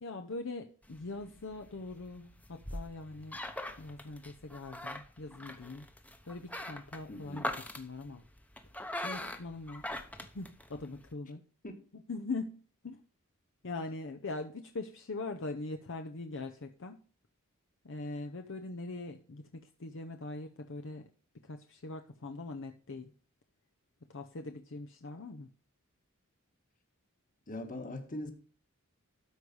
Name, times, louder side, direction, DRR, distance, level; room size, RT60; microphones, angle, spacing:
voice 1, 0.0-3.4 3.8-5.9 6.3-8.2 9.0-9.9 10.3-11.4 12.1-13.0 13.6-17.0 17.8-21.0 21.4-23.1 24.1-25.5, left 3 dB, 60° left, 0.8 m, -42 dB
sound 1, 0.8-11.1, left 1 dB, 5° left, 0.9 m, -43 dB
voice 2, 7.1-7.5 11.6-11.8 27.5-28.3, left 1 dB, 40° left, 1.6 m, -41 dB
12.5 x 4.9 x 5.4 m
head